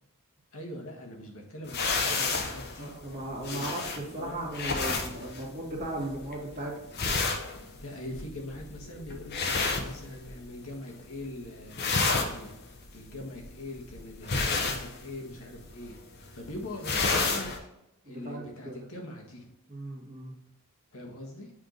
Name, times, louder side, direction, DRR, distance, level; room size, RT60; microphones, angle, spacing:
voice 1, 0.5-2.9 3.4-3.6 4.0-4.4 7.8-12.5 12.9-16.0 16.3-17.7 18.1-19.5 20.9-21.5, left 1 dB, 65° left, 1 dB, 1.4 m, -42 dB
sound 1, 1.7-10.6 10.9-11.4 11.6-17.6, left 4 dB, 45° left, 0.9 m, -31 dB
voice 2, 2.8-6.8 18.0-18.9 19.7-20.3, right 1 dB, 30° right, -8 dB, 1.8 m, -37 dB
7.7 x 3.6 x 3.9 m, 0.85 s
head